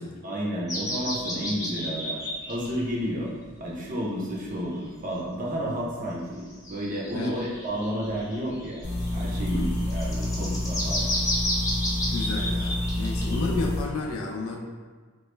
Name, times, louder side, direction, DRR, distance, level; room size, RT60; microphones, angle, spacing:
voice 1, 0.2-2.2 2.5-3.3 3.6-8.8 9.1-11.1, equal, 40° right, -3 dB, 0.6 m, -31 dB
sound 1, 0.7-2.9 3.4-3.5 4.5-4.6 6.5-13.5, equal, 15° left, 0.5 m, -32 dB
sound 2, 8.8-13.8, left 1 dB, 30° left, 0.9 m, -29 dB
voice 2, 12.1-14.6, left 3 dB, 80° left, -1 dB, 0.5 m, -32 dB
3.0 x 2.2 x 3.2 m, 1.5 s
head